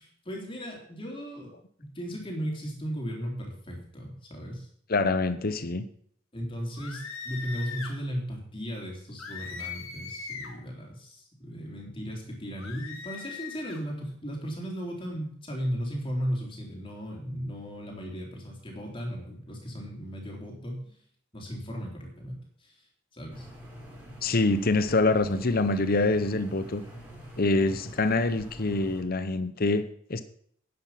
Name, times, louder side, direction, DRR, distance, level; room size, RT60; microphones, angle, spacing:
voice 1, 0.0-1.5 1.8-4.7 6.3-21.0 21.3-22.8 23.1-23.5, equal, 25° left, 3.8 m, -36 dB
voice 2, 4.9-5.9 24.2-26.8 27.4-30.2, left 3 dB, 45° left, 0.8 m, -25 dB
sound 1, 6.8-8.0 9.2-10.6 12.6-13.8, left 5 dB, 80° left, 2.2 m, -40 dB
sound 2, 23.3-29.0, right 1 dB, 10° right, 4.5 m, -45 dB
11.0 x 9.7 x 5.9 m
head